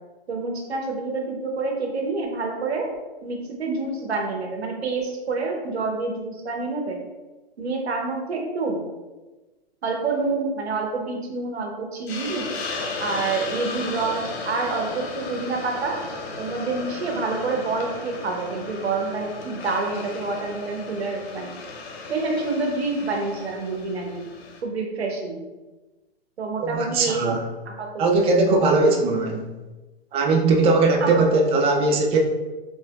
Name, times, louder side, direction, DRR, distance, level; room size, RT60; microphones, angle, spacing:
voice 1, 0.3-2.9 3.2-7.0 7.6-8.8 9.8-12.5 13.0-16.0 16.4-21.6 22.1-24.3 24.6-25.4 26.4-27.4 27.7-28.3 28.8-28.9 31.0-31.4, right 3 dB, 85° right, 1 dB, 1.1 m, -27 dB
Hiss, 12.1-24.6, left 3 dB, 75° left, 1.0 m, -35 dB
voice 2, 26.6-27.4 28.0-29.4 30.1-32.2, right 3 dB, 20° right, 1 dB, 0.5 m, -19 dB
4.1 x 3.8 x 2.5 m, 1.2 s
hypercardioid pair, 125°, 31 cm